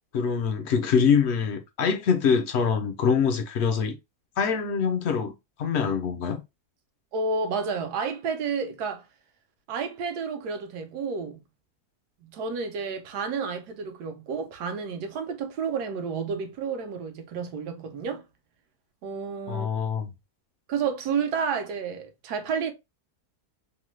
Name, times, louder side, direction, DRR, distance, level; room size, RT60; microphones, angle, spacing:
voice 1, 0.1-4.0 4.4-5.3 5.6-6.4 19.5-20.1, left 6 dB, 75° left, 0.6 m, -24 dB
voice 2, 7.1-9.0 9.7-11.4 12.2-18.2 19.0-19.7 20.7-22.7, right 5 dB, 85° right, 1.2 m, -30 dB
3.1 x 2.0 x 3.1 m
omnidirectional pair, 1.7 m